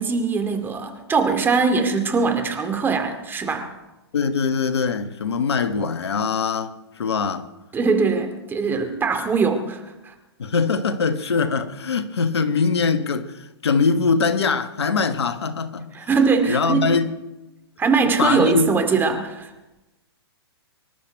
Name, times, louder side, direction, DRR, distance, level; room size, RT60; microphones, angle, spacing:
voice 1, 0.0-3.7 7.7-10.1 15.9-17.0 17.8-19.5, right 4 dB, 15° right, 2.3 m, -21 dB
voice 2, 4.1-7.5 8.7-8.8 10.4-15.9 16.5-17.1 18.2-18.7, left 5 dB, 75° left, 1.4 m, -22 dB
25.0 x 12.0 x 4.7 m
hypercardioid pair, 120°, 14 cm